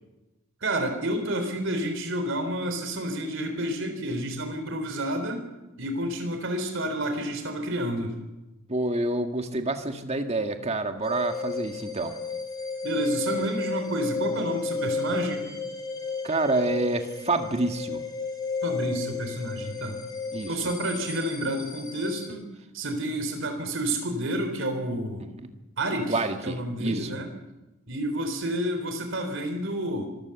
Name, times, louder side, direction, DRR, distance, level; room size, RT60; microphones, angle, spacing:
voice 1, 0.6-5.5 5.8-8.2 12.8-15.5 18.6-20.0 20.5-22.5 22.7-25.3 25.8-27.3 27.9-30.1, right 1 dB, 65° right, 6 dB, 4.0 m, -30 dB
voice 2, 8.7-12.1 16.2-18.0 20.3-20.5 26.1-27.1, right 2 dB, 30° right, 6 dB, 1.7 m, -27 dB
sound 1, 11.0-22.3, left 4 dB, 20° left, 3.5 m, -33 dB
25.0 x 15.5 x 7.1 m, 1.0 s
head